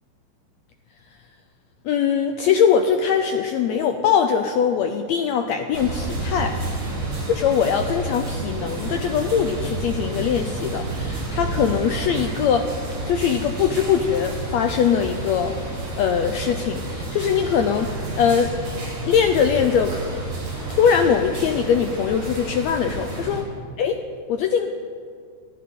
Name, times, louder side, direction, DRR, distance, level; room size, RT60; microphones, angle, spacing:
voice 1, 1.8-6.6 7.4-12.7 13.1-15.6 16.0-18.5 19.0-20.0 20.8-23.4 23.8-24.0 24.3-24.7, left 7 dB, 80° left, 6 dB, 1.6 m, -21 dB
sound 1, 5.7-23.4, right 2 dB, 40° right, 5.1 m, -30 dB
25.0 x 13.5 x 3.9 m, 2.2 s
omnidirectional pair, 3.8 m